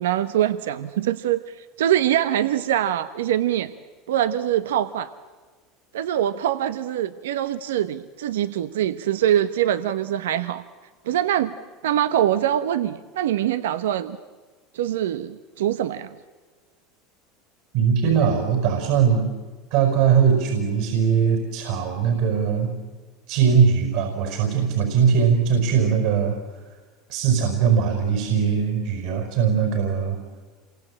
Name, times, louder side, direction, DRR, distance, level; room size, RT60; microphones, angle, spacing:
voice 1, 0.0-3.7 4.1-5.1 5.9-10.6 11.1-11.5 11.8-14.2 14.7-16.1, right 11 dB, 90° right, 11 dB, 0.9 m, -23 dB
voice 2, 17.7-19.2 19.7-22.7 23.3-26.4 27.1-30.2, right 7 dB, 70° right, 5 dB, 5.3 m, -20 dB
27.5 x 23.5 x 8.8 m, 1.4 s
supercardioid pair, 105°, 0 cm